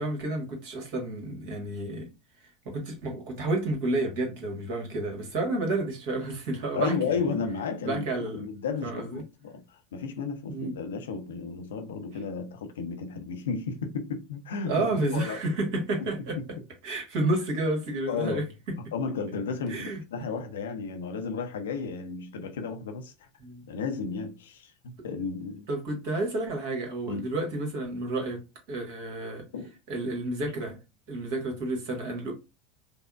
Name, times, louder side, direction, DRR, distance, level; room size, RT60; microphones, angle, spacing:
voice 1, 0.0-2.1 2.6-7.3 7.8-8.4 8.8-9.2 10.5-10.8 14.6-16.4 16.8-18.4 19.7-20.0 23.4-23.6 25.7-28.4 28.7-29.4 29.9-30.8 31.1-32.3, right 2 dB, 55° right, 1.5 m, -30 dB
voice 2, 6.7-8.1 8.3-15.4 16.0-16.5 18.1-18.4 18.9-23.3 23.7-25.7 27.1-27.3 29.5-29.7, left 5 dB, 70° left, 0.5 m, -33 dB
5.2 x 2.1 x 2.4 m
figure-of-eight pair, 75°, 0 cm